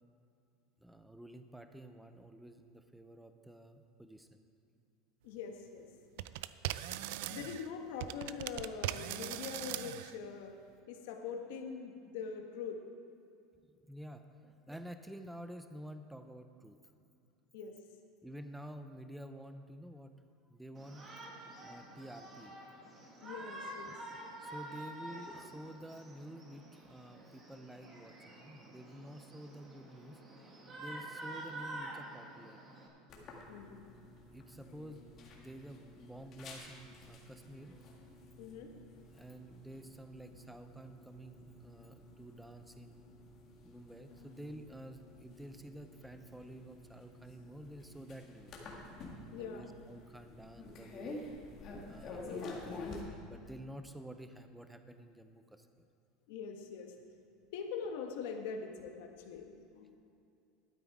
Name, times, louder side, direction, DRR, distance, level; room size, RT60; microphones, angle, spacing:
voice 1, 0.8-4.4 13.6-16.8 18.2-20.2 20.5-21.1 21.6-22.5 23.8-30.2 30.8-32.6 34.3-35.0 35.3-37.8 39.1-43.0 43.6-48.5 49.4-51.2 51.9-55.9, right 1 dB, 5° right, 8 dB, 0.6 m, -50 dB
voice 2, 5.2-5.9 6.2-6.3 7.3-10.6 10.9-12.9 17.5-17.8 23.2-24.0 33.5-34.0 38.4-38.7 49.3-49.7 52.2-52.5 56.3-57.0 57.5-60.0, left 6 dB, 75° left, 4 dB, 1.3 m, -43 dB
sound 1, 6.2-7.7 8.0-10.2, right 14 dB, 75° right, 0.4 m, -40 dB
Shout, 20.7-32.9, right 1 dB, 25° right, 1.6 m, -48 dB
sound 2, 33.1-53.0, left 2 dB, 35° left, 1.8 m, -50 dB
12.0 x 9.0 x 4.8 m, 2.5 s
supercardioid pair, 145°, 0 cm